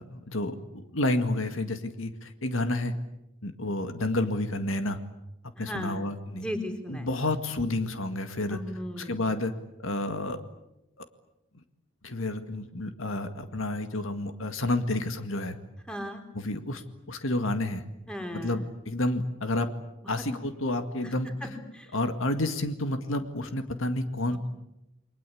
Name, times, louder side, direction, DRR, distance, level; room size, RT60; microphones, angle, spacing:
voice 1, 0.0-2.9 3.4-5.0 5.6-6.5 6.9-8.6 9.0-9.5 9.8-10.4 11.0-11.1 12.0-15.6 16.3-16.8 17.1-17.8 18.3-19.7 20.1-21.5 21.9-24.4, left 2 dB, 70° left, 8 dB, 2.0 m, -30 dB
voice 2, 5.6-6.0 6.3-7.1 8.5-9.2 15.9-16.2 18.1-18.5 20.2-20.3 21.4-21.5 21.7-21.9 24.3-24.4, equal, 5° left, 5 dB, 3.8 m, -36 dB
29.5 x 22.5 x 8.6 m, 0.89 s
head